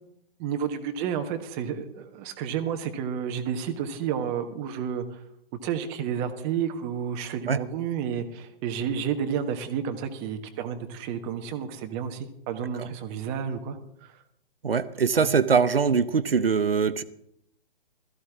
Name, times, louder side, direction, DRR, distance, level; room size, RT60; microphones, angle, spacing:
voice 1, 0.4-5.2 5.6-14.2 15.1-15.3, right 8 dB, 25° right, 6 dB, 1.3 m, -31 dB
voice 2, 14.6-17.0, right 5 dB, 75° right, 13 dB, 0.9 m, -22 dB
17.5 x 14.0 x 3.6 m, 0.73 s
figure-of-eight pair, 130°, 29 cm